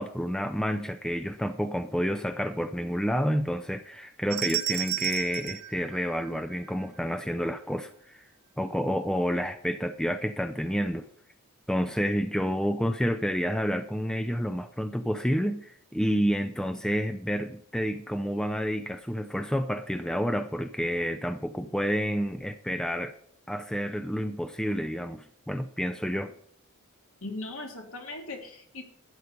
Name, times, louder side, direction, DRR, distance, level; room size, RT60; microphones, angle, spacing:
voice 1, 0.0-8.2 8.6-11.1 11.7-23.1 23.5-26.3, equal, 5° left, 0.4 m, -29 dB
sound 1, 4.3-6.7, right 16 dB, 85° right, 1.8 m, -33 dB
voice 2, 27.2-28.8, left 2 dB, 65° left, 2.6 m, -38 dB
13.0 x 8.1 x 5.3 m
head